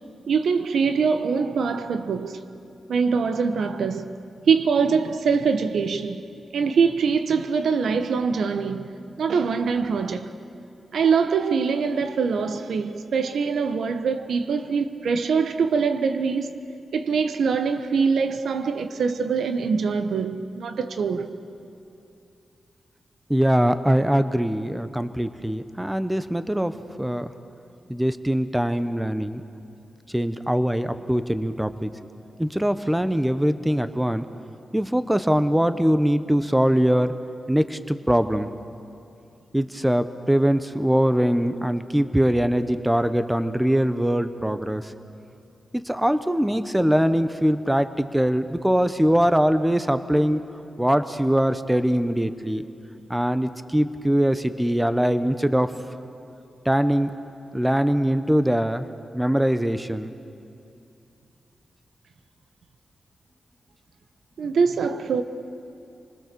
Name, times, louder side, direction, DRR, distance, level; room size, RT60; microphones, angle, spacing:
voice 1, 0.3-2.4 2.9-4.1 4.4-6.2 6.5-8.9 9.2-10.3 10.9-16.5 16.9-21.3 64.4-65.2, right 5 dB, 90° right, 1.0 m, -23 dB
voice 2, 23.3-26.7 27.0-27.3 27.9-29.4 30.1-31.9 32.4-34.2 34.7-37.1 37.5-38.5 39.5-44.9 45.7-50.4 50.8-52.6 53.1-55.7 56.6-57.1 57.5-58.9 59.1-60.1, equal, 5° right, 1.0 m, -22 dB
28.5 x 20.5 x 6.9 m
cardioid pair, 85°, 0 cm